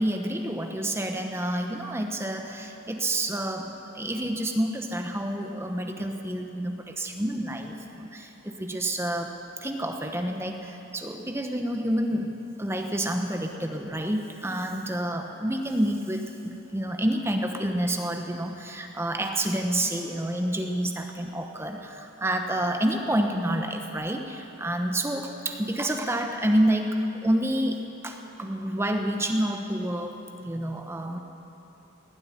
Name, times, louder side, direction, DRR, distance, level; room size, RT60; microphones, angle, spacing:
voice 1, 0.0-9.3 9.6-12.3 12.6-27.0 27.2-27.8 28.0-31.2, right 1 dB, 15° right, 4 dB, 1.0 m, -28 dB
18.0 x 7.8 x 10.0 m, 3.0 s
head